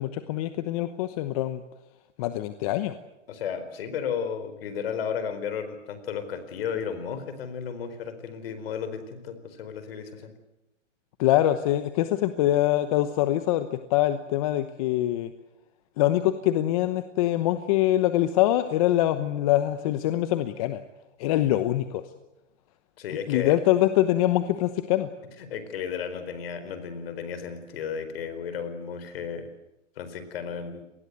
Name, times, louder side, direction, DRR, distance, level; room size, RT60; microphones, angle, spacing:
voice 1, 0.0-1.6 2.2-2.9 11.2-15.3 16.0-20.8 21.2-22.0 23.3-25.1, left 14 dB, 30° left, 11 dB, 1.0 m, -24 dB
voice 2, 3.3-10.3 23.0-23.6 25.4-29.5 30.0-30.8, left 7 dB, 50° left, 10 dB, 4.4 m, -33 dB
26.0 x 20.0 x 8.2 m, 0.94 s
hypercardioid pair, 150°, 37 cm